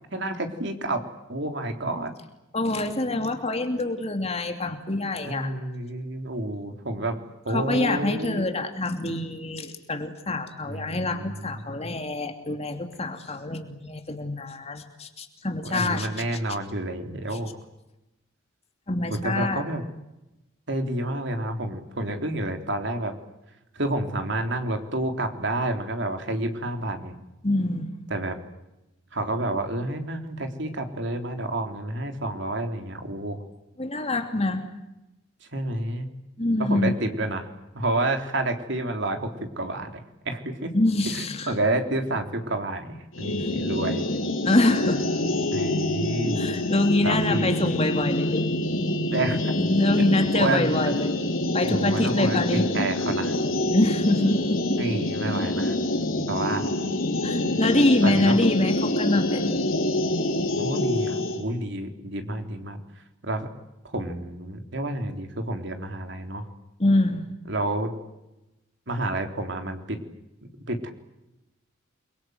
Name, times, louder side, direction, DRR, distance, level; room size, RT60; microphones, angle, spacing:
voice 1, 0.1-1.0 1.3-2.1 5.2-7.2 7.5-8.5 10.7-11.9 15.6-17.5 19.1-19.8 20.7-23.1 23.8-27.1 28.1-28.4 29.1-33.4 35.5-36.1 36.6-37.5 37.7-40.7 41.1-44.1 45.5-46.5 47.0-47.7 49.1-49.4 50.0-50.1 50.3-50.9 51.6-53.4 54.8-55.8 56.3-56.7 58.0-58.4 60.6-62.8 63.2-63.5 63.8-66.5 67.5-67.9 68.9-70.0 70.7-70.9, right 1 dB, 60° right, 5 dB, 3.6 m, -29 dB
voice 2, 2.5-5.5 7.5-16.1 18.9-19.6 27.4-27.9 33.8-34.6 36.4-36.9 40.7-41.5 43.4-43.5 44.4-45.0 46.4-48.4 49.6-51.1 51.5-52.7 53.7-54.8 57.2-59.7 66.8-67.4, left 2 dB, 30° left, 5 dB, 2.8 m, -25 dB
sound 1, 43.1-61.4, left 1 dB, 75° left, 4.9 m, -26 dB
29.5 x 23.5 x 8.0 m, 0.94 s
head